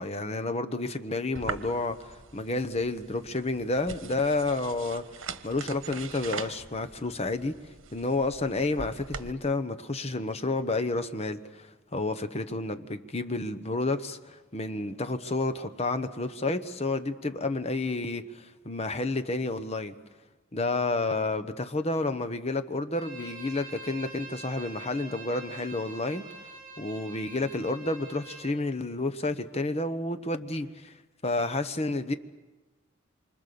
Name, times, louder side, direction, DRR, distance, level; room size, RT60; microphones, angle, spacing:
voice 1, 0.0-5.0 5.4-7.6 7.9-20.0 20.5-26.2 26.8-30.9 31.2-32.1, left 2 dB, 30° left, 1.1 m, -30 dB
sound 1, 1.3-9.3, right 5 dB, 85° right, 1.3 m, -42 dB
Bowed string instrument, 22.9-28.6, right 3 dB, 50° right, 6.1 m, -45 dB
27.0 x 25.5 x 6.9 m
head